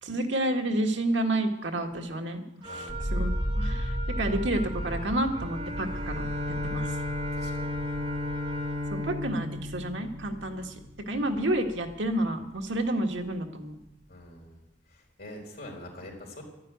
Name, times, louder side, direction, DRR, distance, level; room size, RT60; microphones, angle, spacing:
voice 1, 0.0-6.3 6.6-6.9 8.9-10.8 11.1-13.8, right 1 dB, 80° right, 4 dB, 1.6 m, -30 dB
voice 2, 2.6-3.1 7.3-7.7 11.1-11.4 14.1-14.6 14.9-16.4, left 1 dB, 55° left, 0 dB, 4.1 m, -45 dB
Wind instrument woodwind instrument, 2.6-8.9, right 1 dB, 30° right, 3.9 m, -42 dB
sound 1, 2.9-12.9 13.2-13.9, equal, 80° left, 2.9 m, -35 dB
Bowed string instrument, 5.3-10.9, left 2 dB, 60° right, 2.2 m, -34 dB
12.0 x 9.7 x 9.3 m, 0.92 s
head